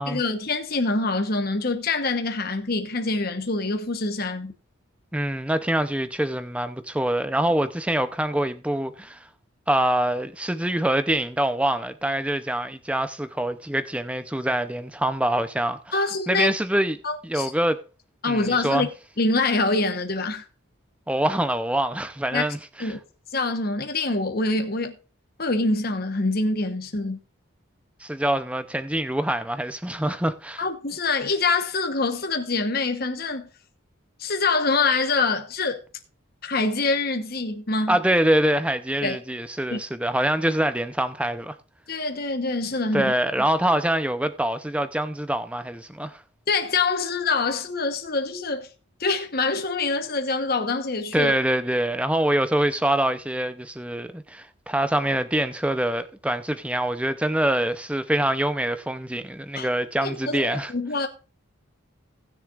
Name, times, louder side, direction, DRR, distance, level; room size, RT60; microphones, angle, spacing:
voice 1, 0.1-4.5 15.9-16.5 17.0-17.5 18.2-18.9 19.2-20.4 22.3-22.4 22.8-23.0 23.3-25.0 25.4-27.2 30.6-33.5 34.2-35.8 36.4-38.0 39.0-39.2 39.7-39.8 41.9-43.1 46.5-48.7 49.0-51.3 59.5-59.7 60.0-61.1, left 3 dB, 45° left, 1.1 m, -25 dB
voice 2, 5.1-9.3 9.7-16.0 16.3-17.0 17.2-17.8 18.3-18.9 21.1-23.0 28.0-30.6 37.9-41.6 42.9-46.2 51.1-60.7, right 1 dB, 5° right, 0.6 m, -25 dB
19.0 x 6.9 x 2.5 m
head